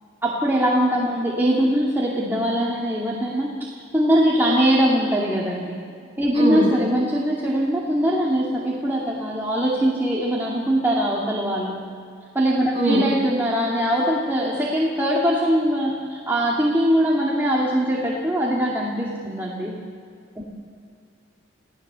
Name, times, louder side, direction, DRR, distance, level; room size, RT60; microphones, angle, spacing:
voice 1, 0.2-5.8 6.2-11.8 12.3-19.8 20.4-20.5, equal, 10° right, -5 dB, 2.3 m, -22 dB
voice 2, 6.3-6.7 12.7-13.0, right 1 dB, 30° right, -4 dB, 7.8 m, -21 dB
28.5 x 17.0 x 6.9 m, 2.3 s
head